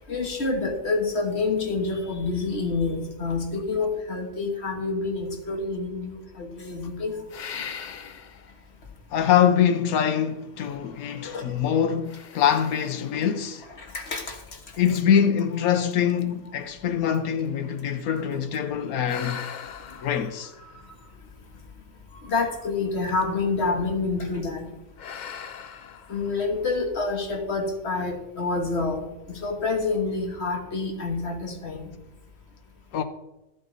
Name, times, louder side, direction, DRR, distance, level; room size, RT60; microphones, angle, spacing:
voice 1, 0.0-7.2 11.2-11.5 13.8-14.6 22.1-24.6 26.1-31.9, left 3 dB, 50° left, 1.7 m, -28 dB
sound 1, 7.3-8.6 9.2-9.3 10.7-11.5 12.1-14.4 15.1-15.2 15.7-15.8 16.1-18.4 19.0-21.7 22.9-23.4 23.8-24.1 25.0-26.8, left 7 dB, 65° left, 0.4 m, -41 dB
voice 2, 9.1-13.6 14.8-19.4 20.0-20.5 32.9-33.0, left 8 dB, 85° left, 1.2 m, -24 dB
13.5 x 7.8 x 4.0 m
omnidirectional pair, 1.5 m